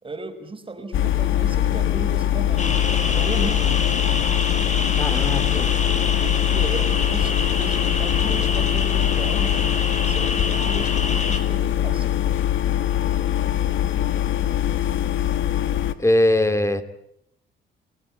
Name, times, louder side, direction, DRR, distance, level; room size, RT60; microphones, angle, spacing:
voice 1, 0.0-4.0 6.1-9.8 10.0-12.1, right 3 dB, 25° right, 6 dB, 4.8 m, -35 dB
sound 1, 0.9-15.9, left 12 dB, 80° left, 1.9 m, -22 dB
sound 2, 2.6-11.4, left 3 dB, 35° left, 5.6 m, -27 dB
voice 2, 5.0-5.7 16.0-16.8, left 1 dB, 15° left, 11 dB, 2.7 m, -21 dB
29.5 x 18.5 x 8.4 m, 0.74 s
cardioid pair, 90°, 20 cm